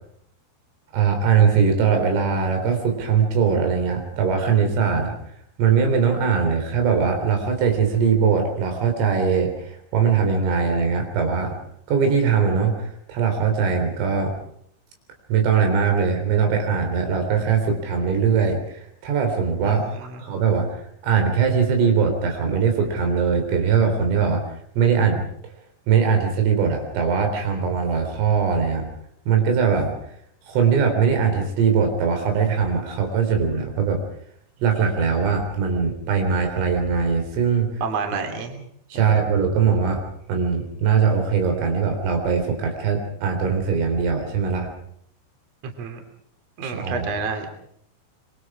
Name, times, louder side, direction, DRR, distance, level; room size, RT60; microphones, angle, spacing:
voice 1, 0.9-5.2 5.6-11.6 11.9-14.3 15.3-20.7 21.0-24.4 24.8-25.3 25.9-28.9 29.3-29.9 30.5-34.0 34.6-37.7 38.9-40.0 40.3-44.7 46.6-47.1, right 6 dB, 75° right, 5 dB, 6.4 m, -21 dB
voice 2, 19.6-20.2 37.8-38.6 38.9-39.1 45.8-46.0 46.6-47.5, right 5 dB, 35° right, 5 dB, 3.4 m, -29 dB
25.5 x 24.0 x 4.9 m, 0.68 s
omnidirectional pair, 6.0 m